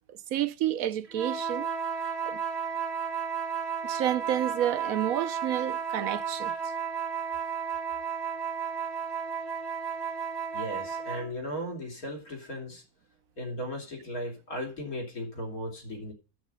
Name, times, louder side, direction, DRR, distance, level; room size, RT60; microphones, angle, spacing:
voice 1, 0.1-1.7 2.3-2.4 3.8-6.5, right 11 dB, 70° right, 1.2 m, -30 dB
sound 1, 1.1-11.3, right 7 dB, 45° right, 1.7 m, -33 dB
voice 2, 10.5-12.8 13.4-16.1, equal, 70° left, 4.0 m, -36 dB
10.5 x 9.2 x 5.5 m
omnidirectional pair, 1.6 m